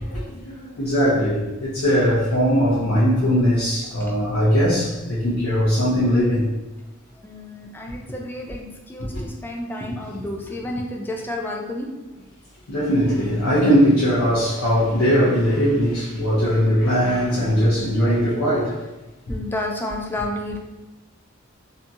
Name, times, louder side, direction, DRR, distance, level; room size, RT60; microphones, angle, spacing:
voice 1, 0.0-6.4 9.1-9.2 12.7-18.8, equal, 80° left, -9 dB, 0.7 m, -20 dB
voice 2, 7.2-11.9 19.3-20.6, left 1 dB, 10° left, 0 dB, 0.3 m, -30 dB
2.7 x 2.7 x 2.3 m, 1.1 s
head